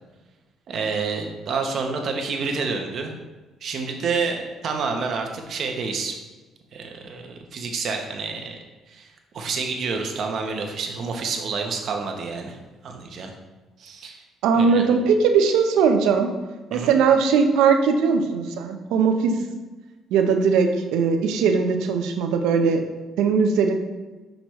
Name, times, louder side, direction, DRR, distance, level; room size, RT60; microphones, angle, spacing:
voice 1, 0.7-3.1 3.6-6.1 6.7-8.6 8.9-12.6 12.8-13.3 13.8-14.2 14.5-14.9 16.7-17.0, right 4 dB, 50° right, 3 dB, 0.9 m, -28 dB
voice 2, 14.4-16.3 16.7-19.3 20.1-22.8 23.2-23.7, right 5 dB, 90° right, 6 dB, 0.6 m, -19 dB
6.2 x 5.1 x 3.1 m, 1.2 s
cardioid pair, 125°, 0 cm